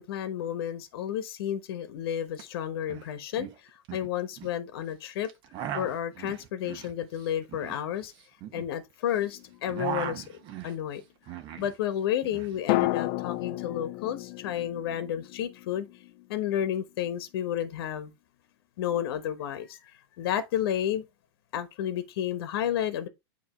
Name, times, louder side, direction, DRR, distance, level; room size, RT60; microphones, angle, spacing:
voice 1, 0.0-3.5 3.9-5.3 5.7-8.1 8.5-10.2 10.6-11.0 11.6-15.9 16.3-18.1 18.8-19.8 20.2-21.0 21.5-23.1, left 10 dB, 70° left, 1.1 m, -31 dB
sound 1, 2.3-2.4 2.7-3.1 3.4-4.6 5.2-9.2 9.5-11.8 12.0-13.0, right 9 dB, 40° right, 1.2 m, -39 dB
sound 2, 9.3-10.3 12.7-16.7 16.9-17.0, left 19 dB, 50° left, 0.5 m, -33 dB
9.1 x 3.1 x 4.3 m
supercardioid pair, 140°, 13 cm